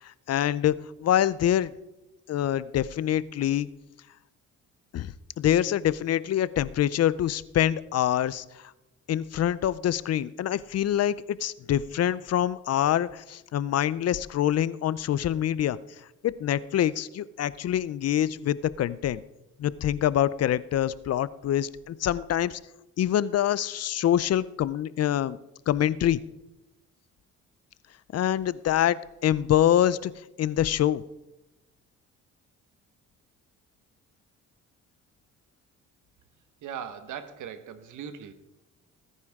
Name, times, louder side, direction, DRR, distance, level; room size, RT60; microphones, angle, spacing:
voice 1, 0.0-1.7 2.3-3.7 4.9-8.7 9.1-15.8 16.2-19.2 19.6-22.6 23.0-25.4 25.7-26.2 28.1-30.1 30.4-31.0, left 11 dB, 55° left, 18 dB, 0.6 m, -25 dB
voice 2, 36.6-38.3, right 8 dB, 80° right, 10 dB, 1.4 m, -39 dB
19.0 x 9.9 x 3.6 m, 0.97 s
cardioid pair, 90°, 30 cm